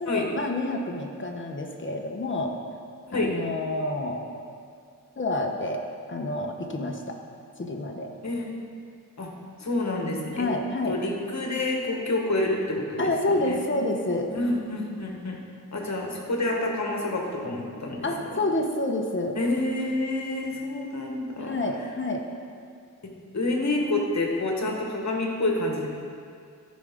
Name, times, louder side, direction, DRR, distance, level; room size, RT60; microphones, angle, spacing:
voice 1, 0.0-2.5 3.1-4.2 5.2-5.8 6.1-7.2 7.6-8.1 10.3-11.0 13.0-14.3 18.0-19.4 21.4-22.2, left 2 dB, 35° left, 2 dB, 1.0 m, -28 dB
voice 2, 9.6-10.5 10.8-13.6 14.3-15.4 15.7-18.4 19.3-21.6 23.3-25.9, left 2 dB, 55° left, 0 dB, 1.4 m, -28 dB
13.5 x 5.3 x 3.6 m, 2.3 s
wide cardioid pair, 85°, 34 cm